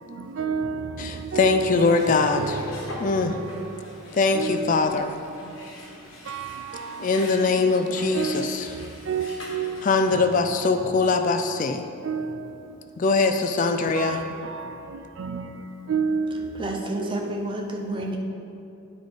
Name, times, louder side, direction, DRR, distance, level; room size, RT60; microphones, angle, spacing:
voice 1, 0.1-3.5 4.3-4.9 6.3-7.1 8.1-9.8 10.1-11.0 12.0-12.5 14.0-15.6 15.9-16.5 16.9-17.4, right 5 dB, 60° right, 0.4 m, -31 dB
voice 2, 1.0-2.6 3.0-3.4 4.1-5.1 7.0-8.7 9.8-11.8 13.0-14.2, left 4 dB, 40° left, 0.4 m, -22 dB
sound 1, 1.4-10.1, left 1 dB, 65° left, 1.5 m, -43 dB
voice 3, 16.5-18.2, right 1 dB, 25° right, 0.7 m, -30 dB
10.5 x 4.9 x 3.9 m
head